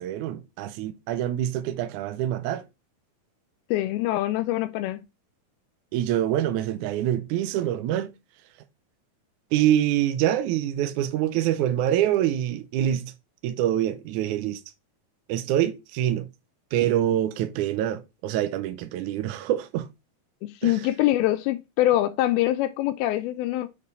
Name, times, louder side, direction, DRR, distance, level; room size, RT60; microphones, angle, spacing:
voice 1, 0.0-2.6 5.9-8.1 9.5-13.1 13.4-14.6 15.3-16.3 16.7-19.9 20.6-20.7, right 11 dB, 80° right, 1.8 m, -25 dB
voice 2, 3.7-5.0 20.4-23.7, left 14 dB, 90° left, 2.4 m, -24 dB
7.4 x 4.4 x 4.0 m
omnidirectional pair, 4.2 m